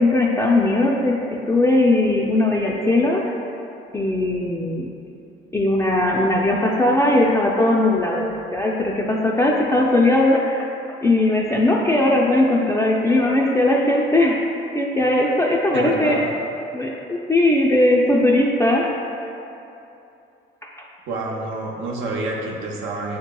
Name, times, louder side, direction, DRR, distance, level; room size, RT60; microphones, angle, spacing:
voice 1, 0.0-3.4 3.9-4.9 5.5-10.7 11.0-14.4 14.7-16.2 16.7-18.9, left 1 dB, 15° left, -3 dB, 0.3 m, -19 dB
voice 2, 15.7-16.3 21.1-23.2, right 2 dB, 85° right, -2 dB, 0.7 m, -28 dB
6.8 x 2.9 x 2.2 m, 2.8 s
cardioid pair, 90°, 20 cm